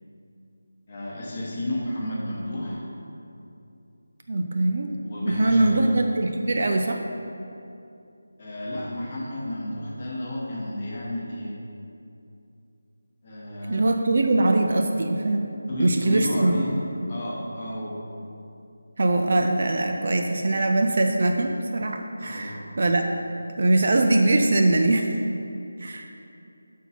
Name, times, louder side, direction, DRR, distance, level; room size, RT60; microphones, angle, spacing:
voice 1, 0.9-2.8 5.0-6.0 8.4-11.5 13.2-13.9 15.7-16.7 17.1-17.9 22.2-22.6, left 1 dB, 25° left, -5 dB, 0.9 m, -31 dB
voice 2, 4.3-4.9 5.3-7.0 13.7-15.5 15.8-16.5 19.0-23.1 23.6-25.2 25.8-26.1, right 2 dB, 40° right, 3 dB, 0.3 m, -22 dB
6.9 x 4.4 x 4.1 m, 2.7 s
figure-of-eight pair, 175°, 0 cm